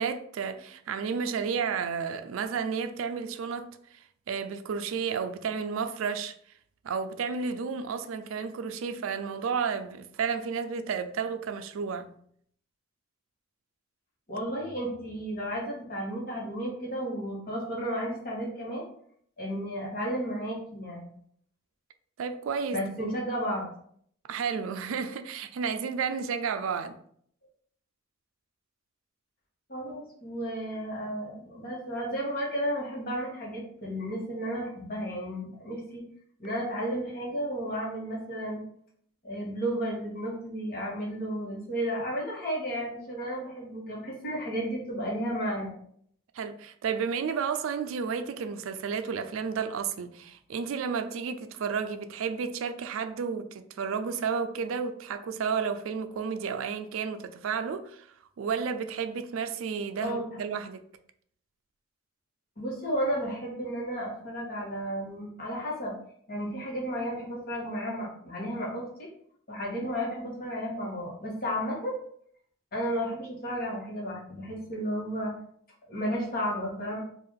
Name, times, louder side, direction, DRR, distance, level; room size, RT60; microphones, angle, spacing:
voice 1, 0.0-3.7 4.3-6.3 6.8-12.1 22.2-23.1 24.3-27.0 46.3-58.1 58.4-60.8, right 6 dB, 80° right, 0.4 m, -32 dB
voice 2, 14.3-18.8 19.4-21.1 22.7-23.7 29.7-36.0 36.4-38.6 39.2-45.7 60.0-60.2 62.6-66.0 66.3-68.9 69.5-71.9 72.7-75.3 75.9-77.0, equal, 50° left, 1.2 m, -33 dB
3.5 x 2.5 x 3.6 m
head